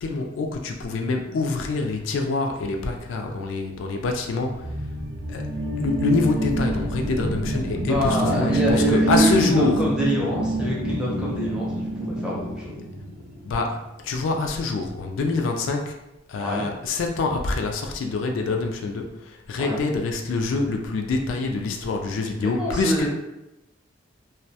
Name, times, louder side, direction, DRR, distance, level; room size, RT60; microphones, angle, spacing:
voice 1, 0.0-4.9 5.3-5.5 5.8-9.9 13.4-16.0 16.3-23.1, left 3 dB, 70° left, 3 dB, 0.3 m, -26 dB
sound 1, 4.3-13.5, right 1 dB, 80° right, 0.6 m, -26 dB
voice 2, 7.9-9.3 9.6-12.7 16.4-16.7 19.6-19.8 22.4-23.1, equal, 5° right, -5 dB, 0.5 m, -26 dB
2.2 x 2.1 x 2.7 m, 0.95 s
head